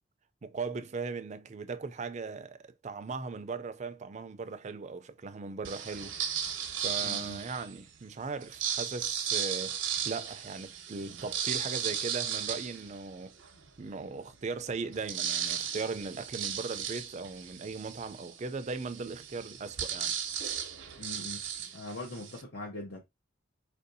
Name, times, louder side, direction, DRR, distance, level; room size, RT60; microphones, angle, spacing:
voice 1, 0.4-6.2 6.8-13.4 13.8-20.2, right 4 dB, 40° right, 0.4 m, -38 dB
sound 1, 5.6-7.8 8.4-13.6 14.1-14.2 14.4-22.4, right 9 dB, 85° right, 0.7 m, -35 dB
voice 2, 7.0-7.4 21.0-21.4 21.7-23.0, left 2 dB, 70° left, 0.9 m, -41 dB
4.5 x 2.7 x 2.6 m
head